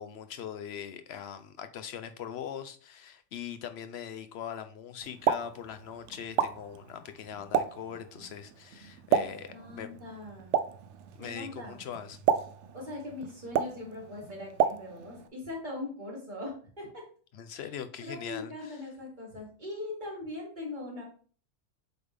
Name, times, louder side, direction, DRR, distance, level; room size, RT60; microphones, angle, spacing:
voice 1, 0.0-9.9 11.1-12.2 17.3-18.8, left 8 dB, 65° left, 0.9 m, -41 dB
Explosion, 5.0-15.3, right 8 dB, 80° right, 0.9 m, -33 dB
voice 2, 9.1-10.5 11.2-11.8 12.7-17.0 17.5-17.7 18.0-21.0, left 2 dB, 40° right, 2.3 m, -41 dB
8.0 x 3.5 x 3.4 m
omnidirectional pair, 1.2 m